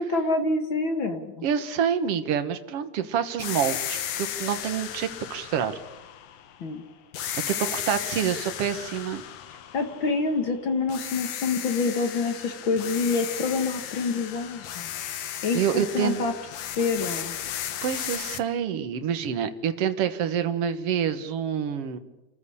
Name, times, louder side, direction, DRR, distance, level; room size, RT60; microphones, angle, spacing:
voice 1, 0.0-1.4 6.6-6.8 9.7-16.3 16.8-17.3, left 3 dB, 50° left, 7 dB, 1.5 m, -27 dB
voice 2, 1.4-5.7 7.5-9.2 15.5-16.3 17.8-22.0, right 8 dB, 60° right, 10 dB, 1.7 m, -27 dB
sound 1, 3.4-6.7 7.1-10.5 10.9-18.4, left 10 dB, 65° left, 1.6 m, -35 dB
29.0 x 14.5 x 10.0 m, 1.0 s
omnidirectional pair, 4.4 m